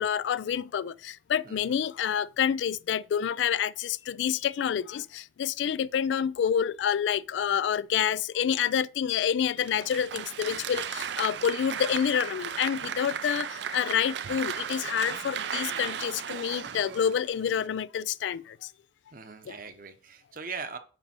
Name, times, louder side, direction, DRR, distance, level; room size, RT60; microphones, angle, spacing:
voice 1, 0.0-18.7 19.5-19.6, left 8 dB, 85° left, 0.3 m, -28 dB
voice 2, 1.4-1.8 19.1-20.8, right 5 dB, 50° right, 0.8 m, -40 dB
Applause, 9.6-17.7, right 8 dB, 75° right, 0.4 m, -35 dB
8.8 x 3.4 x 4.3 m
head